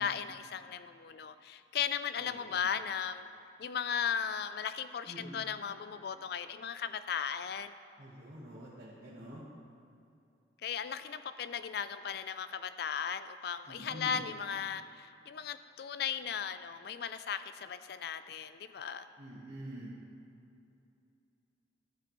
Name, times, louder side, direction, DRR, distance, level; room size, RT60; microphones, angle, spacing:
voice 1, 0.0-3.3 3.6-7.7 10.6-19.1, left 7 dB, 55° left, 12 dB, 0.3 m, -36 dB
voice 2, 2.3-2.7 5.1-5.4 8.0-9.4 13.7-14.2 19.2-19.9, equal, 50° right, -8 dB, 1.2 m, -47 dB
13.0 x 7.7 x 3.1 m, 2.7 s
head